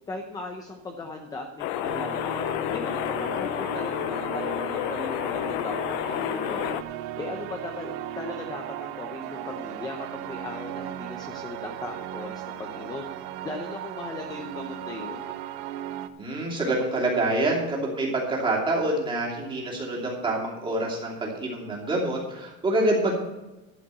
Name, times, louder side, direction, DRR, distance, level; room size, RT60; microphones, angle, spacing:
voice 1, 0.1-2.4 2.7-6.8 7.2-15.2, left 2 dB, 10° left, 3 dB, 0.7 m, -38 dB
sound 1, 1.6-6.8, left 13 dB, 80° left, 0.7 m, -30 dB
sound 2, 1.8-16.1, right 11 dB, 80° right, 0.9 m, -37 dB
voice 2, 16.2-23.2, right 2 dB, 15° right, -2 dB, 2.8 m, -26 dB
12.5 x 5.9 x 8.2 m, 1.1 s
cardioid pair, 175°, 31 cm